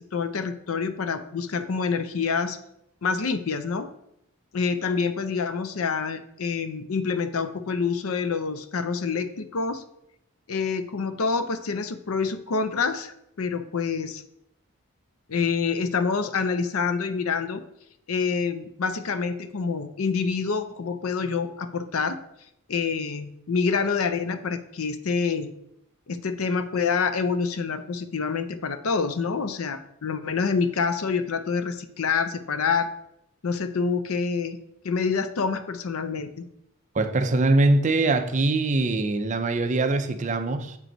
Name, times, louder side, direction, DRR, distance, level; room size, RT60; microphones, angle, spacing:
voice 1, 0.0-2.6 3.0-3.9 4.5-9.8 10.5-14.2 15.3-17.6 18.1-22.2 22.7-25.5 26.1-32.9 33.4-34.6 34.8-36.4, left 5 dB, 75° left, 0.6 m, -27 dB
voice 2, 36.9-40.8, right 2 dB, 35° right, 0.5 m, -22 dB
7.5 x 4.6 x 3.9 m
head